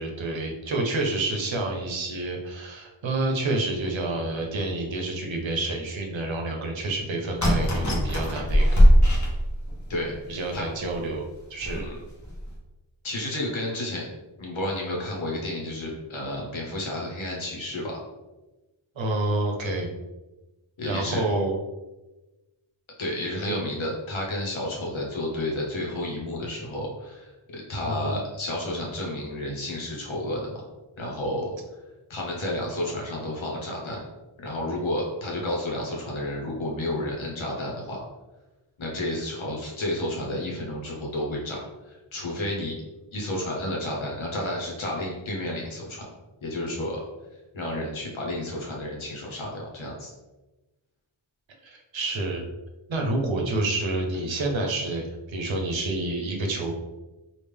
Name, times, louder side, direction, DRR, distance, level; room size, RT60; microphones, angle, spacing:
voice 1, 0.0-8.8 10.3-11.9 19.0-19.9 20.8-21.5 23.5-23.6 27.8-28.2 51.6-52.4 52.9-56.7, right 2 dB, 70° right, 1 dB, 0.8 m, -28 dB
sound 1, 7.4-9.9 10.5-10.6 10.9-11.0 11.6-11.9 12.3-12.5, equal, 35° left, 1.1 m, -20 dB
voice 2, 9.9-10.7 11.7-11.9 13.0-14.1 14.4-18.0 20.8-21.2 23.0-30.6 31.0-31.5 32.1-34.0 34.4-38.0 38.8-41.6 41.8-42.8 43.1-46.1 46.4-47.0 47.5-50.1, left 1 dB, 70° left, -2 dB, 1.1 m, -31 dB
3.4 x 2.5 x 3.4 m, 1.1 s
wide cardioid pair, 75°, 48 cm